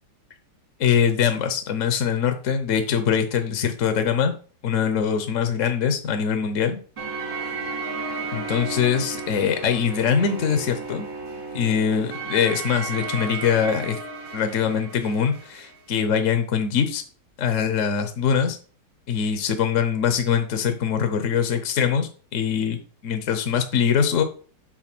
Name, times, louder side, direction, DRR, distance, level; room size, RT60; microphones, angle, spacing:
voice 1, 0.8-4.3 4.6-6.8 8.3-11.1 11.5-14.0 14.3-17.0 17.4-18.6 19.1-22.8 23.0-24.2, left 7 dB, 55° left, 8 dB, 1.0 m, -23 dB
sound 1, 7.0-15.7, right 4 dB, 70° right, 3.4 m, -33 dB
7.3 x 3.8 x 5.9 m, 0.41 s
omnidirectional pair, 1.9 m